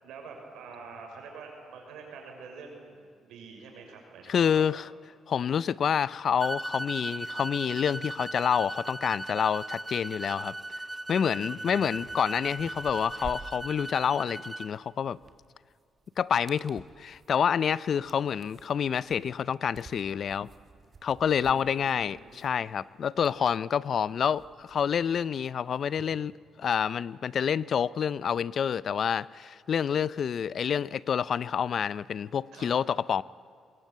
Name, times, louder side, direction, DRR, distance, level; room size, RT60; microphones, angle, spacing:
voice 1, 0.0-4.6 11.5-12.2 21.4-22.5 32.5-32.7, right 5 dB, 85° right, 2 dB, 6.0 m, -47 dB
voice 2, 4.3-4.9 5.3-10.5 11.1-15.2 16.2-20.5 21.0-26.3 26.6-33.2, left 7 dB, 55° left, 20 dB, 0.5 m, -28 dB
sound 1, 6.4-14.7, right 1 dB, 15° right, 0.6 m, -38 dB
sound 2, 11.5-11.6 11.9-25.2, right 4 dB, 40° right, 1.8 m, -52 dB
21.5 x 21.0 x 9.3 m, 2.2 s
cardioid pair, 90°, 0 cm